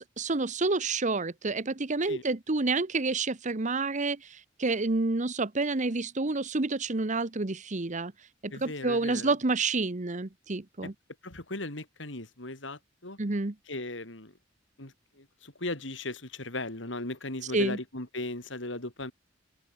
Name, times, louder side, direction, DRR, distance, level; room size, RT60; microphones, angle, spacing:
voice 1, 0.0-4.2 4.6-8.1 8.4-10.9 13.2-13.5 17.5-17.8, right 3 dB, 40° right, 1.1 m, -29 dB
voice 2, 8.5-9.3 10.8-10.9 11.2-13.2 13.7-14.3 14.8-19.1, left 2 dB, 70° left, 4.4 m, -37 dB
head